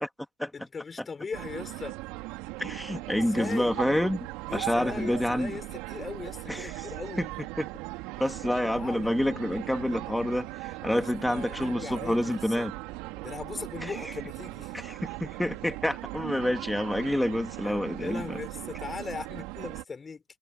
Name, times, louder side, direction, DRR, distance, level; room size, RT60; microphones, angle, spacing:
voice 1, 0.5-2.0 3.1-3.8 4.5-7.2 8.4-9.1 10.9-12.7 13.2-14.8 17.6-20.2, left 5 dB, 20° left, 5.0 m, -39 dB
sound 1, 1.3-19.8, right 20 dB, 70° right, 3.0 m, -39 dB
voice 2, 2.6-4.3 4.5-5.5 6.5-6.9 7.2-7.3 7.6-7.7 8.2-12.7 13.8-13.9 14.7-18.4, left 1 dB, ahead, 2.0 m, -28 dB
cardioid pair, 145°, 0 cm